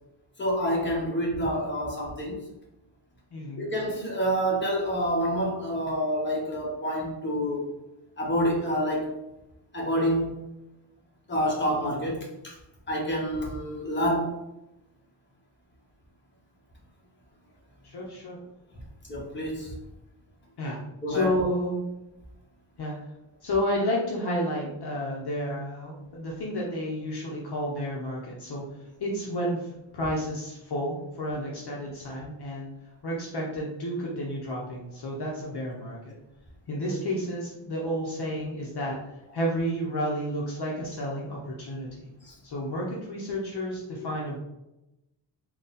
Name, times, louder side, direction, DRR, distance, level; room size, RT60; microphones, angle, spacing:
voice 1, 0.4-2.4 3.6-7.7 8.2-9.2 9.7-10.4 11.3-12.5 12.9-14.4 19.1-19.8 21.0-21.4 42.2-42.4, equal, 25° left, -4 dB, 1.1 m, -28 dB
voice 2, 3.3-3.6 17.8-18.4 20.6-20.8 21.1-21.8 22.8-23.0 23.4-28.6 29.0-32.7 33.0-36.2 36.7-39.0 39.3-42.1 42.4-44.4, equal, 55° left, -3 dB, 0.9 m, -31 dB
3.9 x 2.4 x 4.1 m, 0.92 s
wide cardioid pair, 160°, 46 cm